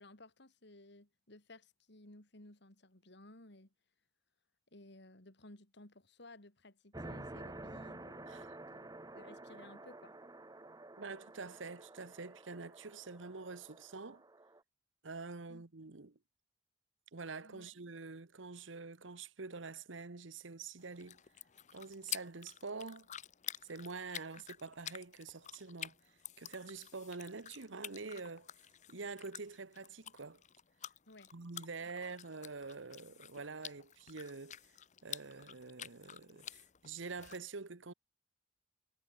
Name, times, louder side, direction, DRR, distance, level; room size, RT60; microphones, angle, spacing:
voice 1, 0.0-3.7 4.7-8.3 8.7-10.1 15.5-15.6 17.4-17.7 31.1-31.3 31.9-32.1, left 2 dB, 65° left, 3.5 m, -57 dB
sound 1, 6.9-14.6, right 2 dB, 20° right, 1.2 m, -50 dB
voice 2, 11.0-14.2 15.0-16.2 17.1-21.2 21.7-23.1 23.6-26.0 26.4-28.5 28.9-30.4 31.3-34.6 35.0-37.9, right 4 dB, 90° right, 1.2 m, -46 dB
sound 2, 20.8-37.4, left 10 dB, 40° left, 0.8 m, -50 dB
head